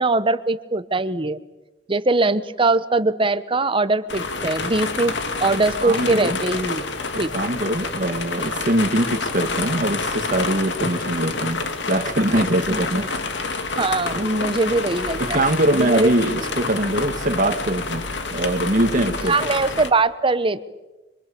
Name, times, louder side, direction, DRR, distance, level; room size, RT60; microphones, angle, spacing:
voice 1, 0.0-1.4 1.9-5.1 5.4-6.9 7.2-7.3 12.7-13.1 13.8-15.4 15.7-16.1 19.2-20.6, right 3 dB, 30° right, 13 dB, 1.1 m, -21 dB
sound 1, 4.1-19.9, left 3 dB, 70° left, 2.5 m, -28 dB
voice 2, 5.8-6.4 7.3-13.1 14.1-14.3 15.2-19.4, right 1 dB, 45° right, 5 dB, 1.8 m, -22 dB
26.5 x 25.0 x 8.5 m, 1.1 s
head